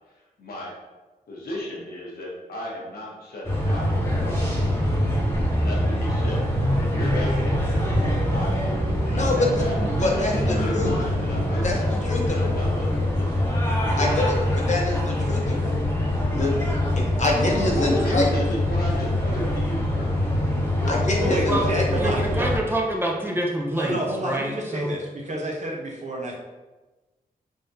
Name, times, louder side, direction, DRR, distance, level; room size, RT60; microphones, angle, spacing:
voice 1, 0.4-0.7 1.3-4.4 5.6-6.4 6.8-8.6 9.0-11.9 12.2-13.5 13.8-14.7 17.6-20.1 20.8-20.9 21.2-21.8, left 1 dB, 75° left, -3 dB, 1.1 m, -34 dB
sound 1, 3.4-22.6, left 1 dB, 15° left, 1.0 m, -24 dB
voice 2, 9.1-9.7 10.0-10.9 11.6-12.5 14.0-15.7 16.3-16.5 17.0-18.5 20.9-22.2, left 2 dB, 50° left, -1 dB, 0.9 m, -26 dB
voice 3, 21.2-22.4 23.7-26.4, right 1 dB, 50° right, 0 dB, 0.8 m, -30 dB
voice 4, 22.0-24.9, right 1 dB, 15° right, -1 dB, 0.7 m, -26 dB
3.8 x 3.4 x 2.7 m, 1.2 s
cardioid pair, 65°, 16 cm